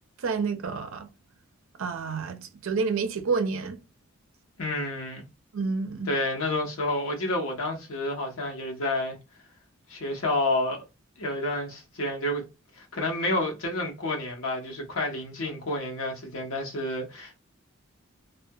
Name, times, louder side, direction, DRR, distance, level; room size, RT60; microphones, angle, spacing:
voice 1, 0.2-1.1 1.8-3.8 5.5-6.1, right 4 dB, 65° right, 0.4 m, -29 dB
voice 2, 4.6-5.2 6.1-9.2 9.9-10.8 11.2-12.4 12.7-17.4, left 1 dB, 75° left, 0.9 m, -29 dB
2.7 x 2.3 x 2.2 m
head